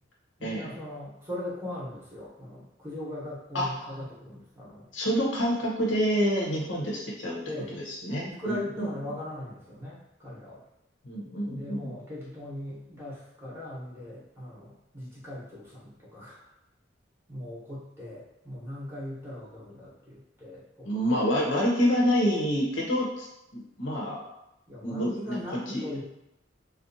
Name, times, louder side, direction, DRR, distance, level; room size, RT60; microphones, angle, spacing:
voice 1, 0.4-4.9 7.4-7.7 8.1-10.6 11.5-16.4 17.3-20.9 24.7-26.0, left 1 dB, 15° right, -7 dB, 0.8 m, -39 dB
voice 2, 3.5-3.9 4.9-7.4 7.7-8.9 11.0-11.9 20.8-23.3 23.5-24.2 24.8-26.0, equal, 70° left, -2 dB, 0.7 m, -27 dB
2.6 x 2.2 x 2.6 m, 0.86 s
head